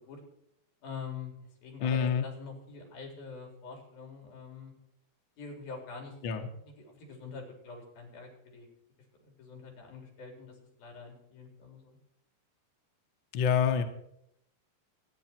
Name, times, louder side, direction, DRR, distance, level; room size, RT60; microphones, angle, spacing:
voice 1, 0.8-1.3 1.6-4.7 5.4-6.2 6.6-8.7 9.2-12.0, left 4 dB, 70° left, 2 dB, 5.7 m, -45 dB
voice 2, 1.8-2.3 6.2-6.5 13.3-13.8, left 7 dB, 55° left, 5 dB, 1.3 m, -27 dB
26.5 x 10.5 x 4.6 m, 0.75 s
omnidirectional pair, 4.3 m